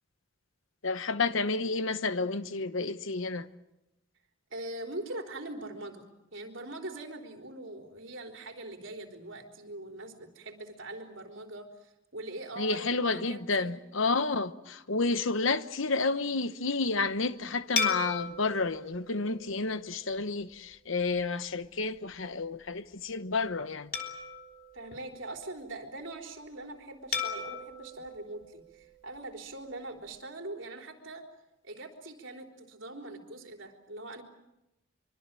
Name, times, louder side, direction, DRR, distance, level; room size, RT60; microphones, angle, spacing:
voice 1, 0.8-3.5 12.6-23.9, left 3 dB, 70° left, 1.0 m, -30 dB
voice 2, 4.5-6.0 6.3-13.7 24.7-31.2 31.6-34.2, right 2 dB, 65° right, 3.9 m, -42 dB
sound 1, 17.8-20.4 21.0-21.2 23.9-25.7 27.1-29.4, left 5 dB, 45° left, 3.4 m, -37 dB
24.5 x 24.5 x 7.6 m
head